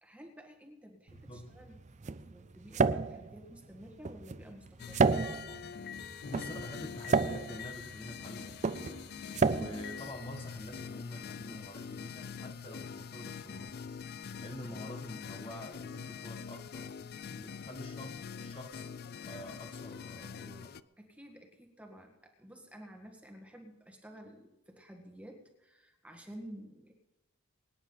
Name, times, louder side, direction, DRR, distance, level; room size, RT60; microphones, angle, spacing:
voice 1, 0.0-5.1 14.6-14.9 21.0-26.9, equal, 5° right, 2 dB, 1.7 m, -52 dB
voice 2, 1.1-1.5 6.2-8.9 9.4-13.9 14.4-16.9 17.3-18.9 19.2-20.7, left 1 dB, 25° left, 2 dB, 1.5 m, -47 dB
sound 1, 1.1-10.9, right 4 dB, 35° right, 0.4 m, -32 dB
sound 2, 4.8-20.8, left 6 dB, 45° left, 0.4 m, -44 dB
23.5 x 9.9 x 4.0 m, 0.96 s
head